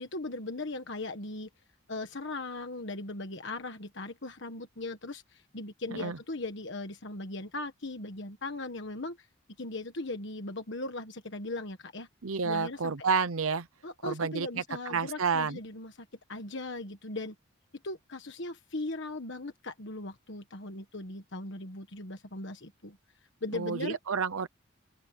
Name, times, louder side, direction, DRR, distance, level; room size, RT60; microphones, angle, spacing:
voice 1, 0.0-1.5 1.9-9.3 9.6-12.1 12.4-13.1 13.8-17.3 17.8-23.0 23.4-24.0, left 2 dB, 55° left, 1.5 m, -38 dB
voice 2, 12.2-13.7 14.0-14.5 14.9-15.6 23.5-24.5, right 5 dB, 80° right, 0.8 m, -30 dB
open air
head